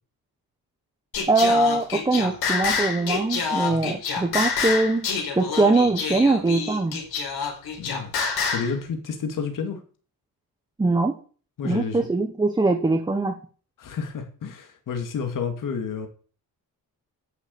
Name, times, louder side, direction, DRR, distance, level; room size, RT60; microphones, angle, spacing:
Singing, 1.1-8.7, left 5 dB, 75° left, 4.8 m, -27 dB
voice 1, 1.3-5.0 5.4-7.0 10.8-11.1 11.6-13.3, right 2 dB, 10° right, 4 dB, 1.1 m, -22 dB
voice 2, 7.8-8.1 8.5-9.8 11.6-12.1 13.8-16.1, left 6 dB, 55° left, 5 dB, 2.5 m, -30 dB
11.0 x 7.1 x 8.4 m, 0.40 s
wide cardioid pair, 170°, 38 cm